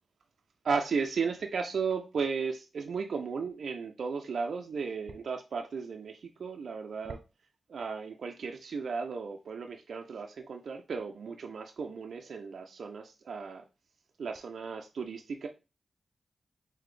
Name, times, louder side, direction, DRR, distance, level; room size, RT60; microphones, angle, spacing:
voice 1, 0.6-7.2 7.7-13.6 14.2-15.5, right 5 dB, 75° right, 4 dB, 0.4 m, -35 dB
3.9 x 2.7 x 3.1 m, 0.29 s
cardioid pair, 70°, 0 cm